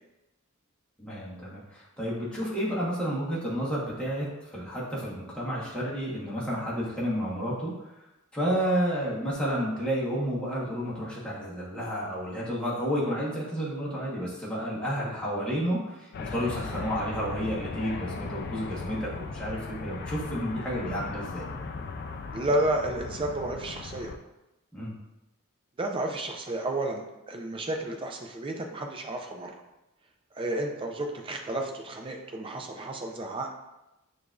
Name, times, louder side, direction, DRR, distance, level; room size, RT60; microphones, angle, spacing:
voice 1, 1.0-7.7 8.3-21.4 24.7-24.9, equal, 5° left, -7 dB, 1.1 m, -31 dB
sound 1, 16.1-24.2, left 4 dB, 50° left, 0.3 m, -37 dB
voice 2, 22.3-24.1 25.8-29.6 30.3-33.5, right 1 dB, 25° right, 2 dB, 0.4 m, -31 dB
6.5 x 2.5 x 2.4 m, 0.96 s
head